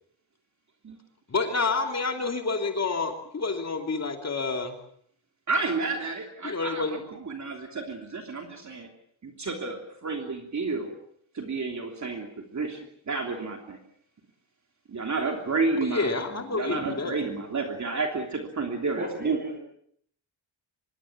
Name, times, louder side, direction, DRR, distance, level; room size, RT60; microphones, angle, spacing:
voice 1, 1.3-4.7 6.4-7.0 15.8-17.2, left 4 dB, 35° left, 4 dB, 2.9 m, -28 dB
voice 2, 5.5-8.9 9.2-10.9 11.3-13.8 14.9-19.4, right 3 dB, 35° right, 3 dB, 3.1 m, -31 dB
voice 3, 18.9-19.6, equal, 20° right, 5 dB, 8.0 m, -35 dB
25.0 x 22.0 x 7.4 m, 0.66 s
wide cardioid pair, 145°, 47 cm